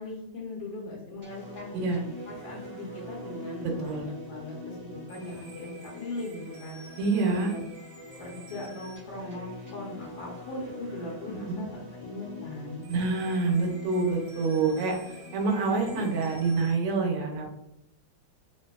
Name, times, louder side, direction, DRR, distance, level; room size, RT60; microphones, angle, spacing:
voice 1, 0.0-1.7 2.3-7.6 8.2-12.8 15.9-16.0, left 2 dB, 70° left, -5 dB, 1.5 m, -39 dB
sound 1, 1.2-16.7, left 1 dB, 20° right, 0.5 m, -44 dB
voice 2, 7.0-7.5 11.5-11.6 12.9-17.5, right 4 dB, 85° right, 1 dB, 1.6 m, -27 dB
3.8 x 2.6 x 2.3 m, 0.83 s
omnidirectional pair, 2.4 m